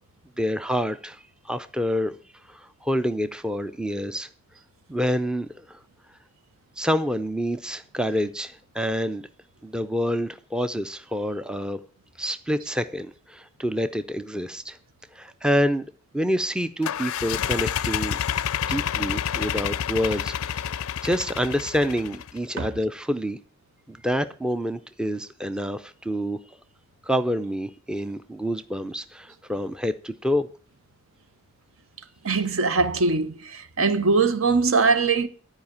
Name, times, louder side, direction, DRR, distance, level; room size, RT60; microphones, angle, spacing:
voice 1, 0.4-1.2 1.5-2.2 2.5-4.3 4.9-5.5 6.8-9.2 9.6-11.8 12.2-14.8 15.1-15.9 16.1-18.2 18.7-20.7 21.0-23.4 23.9-26.4 27.1-30.5, equal, 5° right, 0.4 m, -27 dB
sound 1, 16.8-22.4, left 9 dB, 80° left, 0.4 m, -28 dB
voice 2, 32.2-35.3, right 4 dB, 70° right, 0.9 m, -21 dB
12.0 x 4.9 x 8.6 m
head